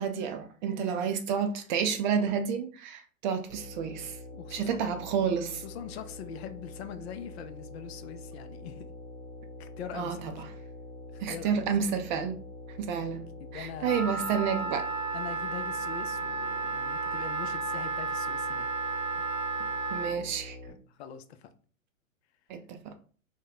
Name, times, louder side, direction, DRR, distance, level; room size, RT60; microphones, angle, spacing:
voice 1, 0.0-4.2 4.5-5.6 9.9-10.3 11.2-12.4 12.8-13.3 13.5-14.9 19.9-20.6 22.5-22.9, right 7 dB, 35° right, 0.4 m, -30 dB
voice 2, 0.7-1.1 4.3-5.0 5.6-8.8 9.6-10.4 11.1-11.7 13.1-13.2 13.4-14.3 15.1-18.7 19.1-19.2 20.9-21.5, left 8 dB, 50° left, 0.6 m, -43 dB
sound 1, 3.5-20.7, left 2 dB, 15° right, 1.1 m, -45 dB
Wind instrument woodwind instrument, 13.8-20.2, right 4 dB, 80° right, 0.7 m, -33 dB
2.9 x 2.2 x 3.9 m
hypercardioid pair, 105°, 40 cm